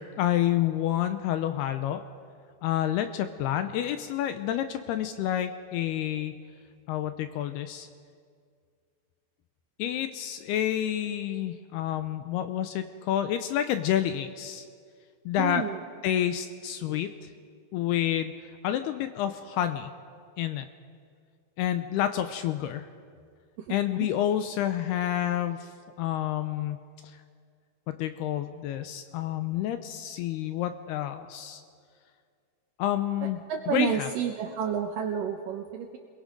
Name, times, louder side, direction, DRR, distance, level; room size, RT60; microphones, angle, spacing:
voice 1, 0.0-2.0 2.6-6.4 6.9-7.9 9.8-14.7 15.3-15.6 16.0-17.3 17.7-19.9 20.4-20.7 21.6-22.9 23.7-25.7 26.0-26.8 27.0-27.2 27.9-31.6 32.8-33.4 33.7-34.1, left 11 dB, 80° left, 9 dB, 2.4 m, -29 dB
voice 2, 15.4-15.8 33.5-36.0, right 8 dB, 75° right, 4 dB, 2.0 m, -30 dB
29.0 x 22.0 x 5.2 m, 2.1 s
omnidirectional pair, 5.1 m